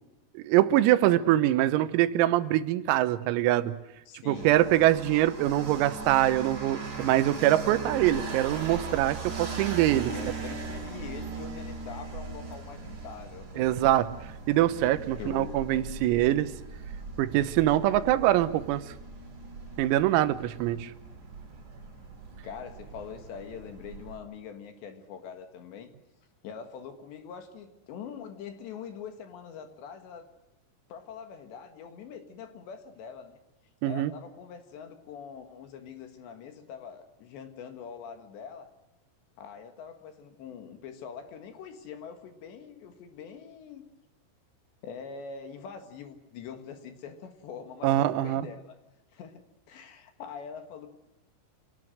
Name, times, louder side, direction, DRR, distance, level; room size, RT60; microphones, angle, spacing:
voice 1, 0.4-3.7 4.3-10.1 13.6-16.5 17.2-18.8 19.8-20.9 33.8-34.1 47.8-48.5, right 14 dB, 85° right, 13 dB, 3.7 m, -24 dB
voice 2, 4.1-4.6 10.0-13.7 15.2-15.6 20.7-20.8 22.4-25.9 26.4-30.3 30.9-33.4 33.8-38.7 39.4-43.8 44.8-48.8 49.1-49.4 49.7-50.9, left 7 dB, 65° left, 7 dB, 3.6 m, -43 dB
sound 1, 4.3-24.2, right 4 dB, 40° right, 6.6 m, -39 dB
27.0 x 18.5 x 7.8 m, 0.98 s
omnidirectional pair, 6.0 m